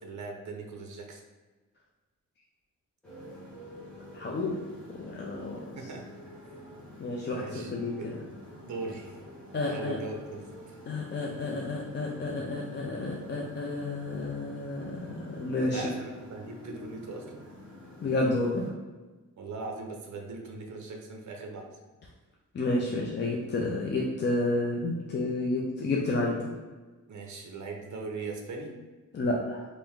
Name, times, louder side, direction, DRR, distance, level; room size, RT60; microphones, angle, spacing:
voice 1, 0.0-1.2 5.8-6.3 7.3-8.1 8.6-9.2 9.7-10.4 15.7-17.5 19.4-21.7 27.1-28.7, right 3 dB, 60° right, 2 dB, 0.6 m, -40 dB
Motorcycle, 3.0-18.7, left 1 dB, 5° left, 1.0 m, -48 dB
voice 2, 4.1-4.6 4.9-5.8 7.0-8.1 9.5-10.0 10.9-15.8 18.0-18.7 22.5-26.5 29.1-29.7, left 2 dB, 35° left, -2 dB, 0.4 m, -30 dB
3.3 x 2.6 x 3.6 m, 1.2 s
wide cardioid pair, 160°, 32 cm